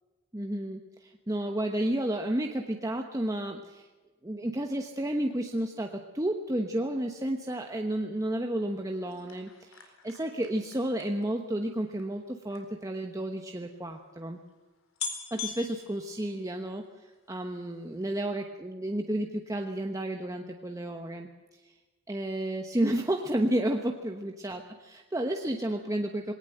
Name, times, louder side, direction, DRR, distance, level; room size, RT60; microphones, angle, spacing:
voice 1, 0.3-3.9 4.2-14.4 15.3-16.8 17.3-21.3 22.1-26.3, right 1 dB, 15° right, 3 dB, 1.0 m, -31 dB
sound 1, 9.1-12.7 13.5-13.6 13.8-13.9 14.5-14.6 15.0-16.9 17.3-17.7 18.0-18.1, left 6 dB, 75° left, 4.3 m, -42 dB
21.0 x 18.0 x 7.9 m, 1.2 s
head